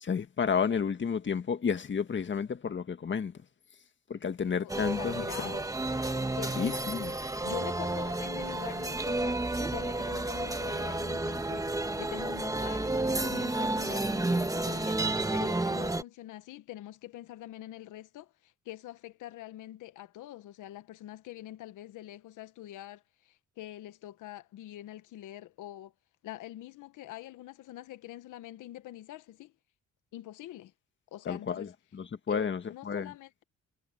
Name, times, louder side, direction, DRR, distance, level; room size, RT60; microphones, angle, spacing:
voice 1, 0.0-3.3 4.1-5.5 6.6-7.1 31.3-33.1, left 6 dB, 40° left, 1.8 m, -31 dB
voice 2, 4.4-5.7 6.4-6.9 7.4-25.9 26.2-29.5 30.1-30.7 31.1-31.7 32.3-33.4, left 14 dB, 85° left, 1.1 m, -45 dB
sound 1, 4.7-16.0, right 2 dB, 10° right, 1.4 m, -31 dB
cardioid pair, 90°, 30 cm